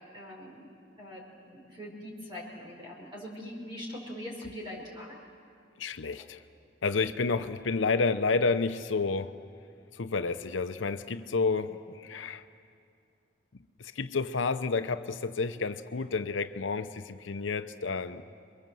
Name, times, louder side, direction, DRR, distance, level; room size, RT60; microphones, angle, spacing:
voice 1, 0.1-0.7 1.0-5.2, equal, 25° right, -3 dB, 5.3 m, -42 dB
voice 2, 5.8-6.4 6.8-9.4 9.9-12.4 13.8-18.2, left 4 dB, 80° left, 9 dB, 0.7 m, -30 dB
28.5 x 22.5 x 7.7 m, 2.4 s
head